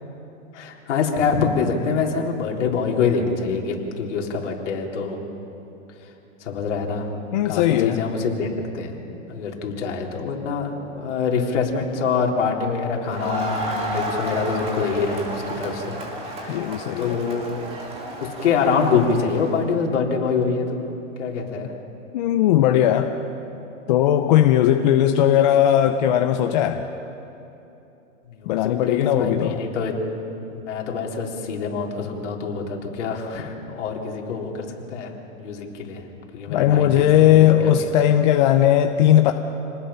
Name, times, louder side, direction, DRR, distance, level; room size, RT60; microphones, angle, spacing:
voice 1, 0.5-5.2 6.4-7.1 7.4-9.0 9.3-16.0 16.2-16.6 17.0-17.6 18.2-20.8 21.2-21.7 28.3-29.9 30.5-35.1 35.4-36.0 36.3-37.5 37.8-37.9, left 5 dB, 65° left, 0 dB, 3.8 m, -25 dB
voice 2, 7.3-8.0 16.5-17.2 22.1-23.2 23.9-26.9 28.5-29.6 36.5-39.3, left 11 dB, 35° left, 6 dB, 0.8 m, -18 dB
Crowd, 13.0-19.6, right 1 dB, 15° right, 2.2 m, -32 dB
28.5 x 20.0 x 5.7 m, 2.9 s
hypercardioid pair, 165°, 39 cm